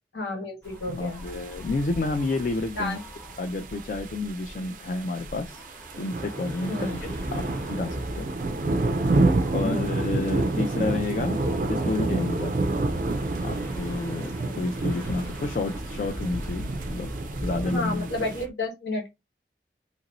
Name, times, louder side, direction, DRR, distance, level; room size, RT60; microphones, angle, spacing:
voice 1, 0.1-1.2 2.7-3.0 6.7-7.0 9.6-10.0 14.4-14.7 17.6-19.1, left 2 dB, 85° left, 1.3 m, -31 dB
sound 1, 0.6-18.5, equal, 10° left, 0.6 m, -41 dB
voice 2, 0.9-3.0 3.4-5.6 6.0-8.3 9.5-11.4 11.7-12.5 13.4-17.1 17.4-18.1, left 3 dB, 45° left, 0.3 m, -30 dB
sound 2, 1.3-18.4, right 2 dB, 45° right, 0.3 m, -29 dB
2.9 x 2.6 x 2.9 m
head